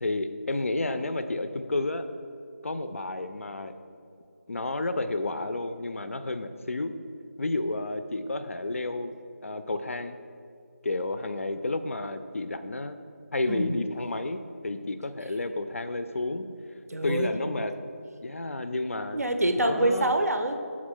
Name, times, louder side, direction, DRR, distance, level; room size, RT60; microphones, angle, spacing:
voice 1, 0.0-2.0 2.6-3.7 4.5-6.9 7.4-9.2 9.4-10.2 10.8-13.0 13.3-16.5 17.0-17.9 18.2-19.2 19.6-20.1, left 2 dB, 60° left, 10 dB, 0.4 m, -31 dB
voice 2, 16.9-17.3 19.1-20.6, right 1 dB, 80° right, 7 dB, 0.6 m, -26 dB
6.1 x 4.2 x 4.3 m, 2.4 s
figure-of-eight pair, 165°, 8 cm